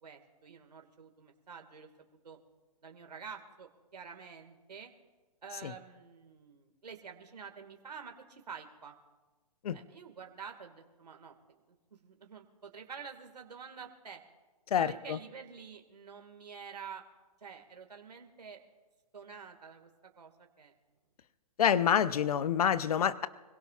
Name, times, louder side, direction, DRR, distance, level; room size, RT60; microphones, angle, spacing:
voice 1, 0.0-1.9 2.2-2.4 2.8-4.9 5.4-8.9 9.7-11.4 11.7-14.2 14.8-17.0 17.4-18.6 19.1-20.7, right 6 dB, 90° right, 3 dB, 2.0 m, -48 dB
voice 2, 14.7-15.2 21.6-23.3, left 9 dB, 70° left, 14 dB, 0.8 m, -27 dB
25.5 x 17.0 x 2.5 m, 1.2 s
hypercardioid pair, 145°, 20 cm